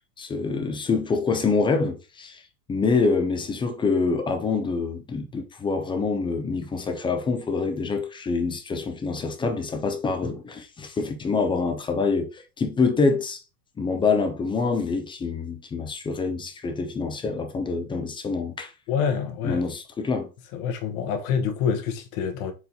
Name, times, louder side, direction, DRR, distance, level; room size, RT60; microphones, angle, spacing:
voice 1, 0.2-2.4 2.7-13.4 13.8-18.7 19.4-20.3, left 4 dB, 10° left, 0.4 m, -26 dB
voice 2, 18.9-19.7 20.5-22.5, left 7 dB, 60° left, 1.1 m, -26 dB
4.4 x 3.7 x 2.7 m
hypercardioid pair, 105°, 47 cm